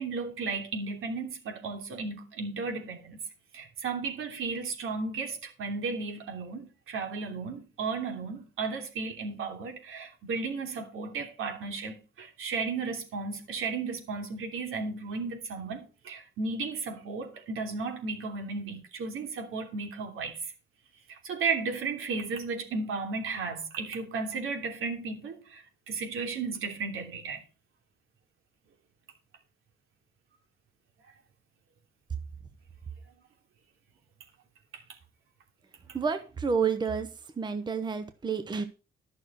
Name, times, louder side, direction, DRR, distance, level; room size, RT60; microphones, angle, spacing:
voice 1, 0.0-3.2 3.5-20.4 21.2-25.6 25.9-27.4, right 4 dB, 75° right, 3.2 m, -34 dB
voice 2, 35.9-37.1 37.4-38.6, right 5 dB, 20° right, 0.9 m, -29 dB
12.5 x 6.2 x 5.7 m
wide cardioid pair, 165°, 21 cm